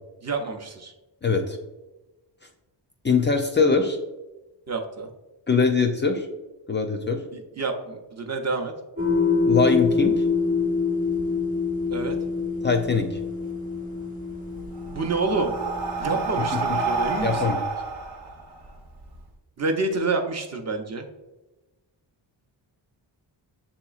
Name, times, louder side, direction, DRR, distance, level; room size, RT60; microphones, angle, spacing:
voice 1, 0.2-0.9 4.7-5.1 7.3-8.7 11.9-12.2 14.9-15.5 16.0-17.5 19.6-21.1, right 3 dB, 35° right, 4 dB, 0.6 m, -28 dB
voice 2, 1.2-1.6 3.0-4.0 5.5-6.3 6.7-7.2 9.4-10.2 12.6-13.2 16.5-16.6 17.2-17.6, left 4 dB, 25° left, 3 dB, 0.4 m, -22 dB
sound 1, 9.0-17.5, left 4 dB, 20° right, 0.9 m, -26 dB
Breathing, 14.4-19.2, right 4 dB, 55° right, 0.9 m, -29 dB
6.9 x 2.9 x 2.4 m, 1.1 s
cardioid pair, 100°, 45 cm